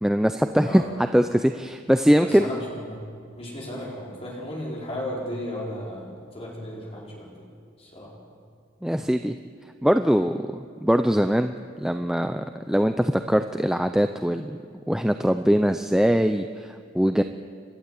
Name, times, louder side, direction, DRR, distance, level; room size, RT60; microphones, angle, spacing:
voice 1, 0.0-2.6 8.8-9.3 9.8-10.5 10.8-14.6 14.9-17.2, equal, 5° right, 7 dB, 0.5 m, -22 dB
voice 2, 2.2-3.0 3.4-7.3 7.8-8.1, left 1 dB, 30° left, -4 dB, 4.8 m, -35 dB
30.0 x 12.5 x 8.5 m, 2.2 s
head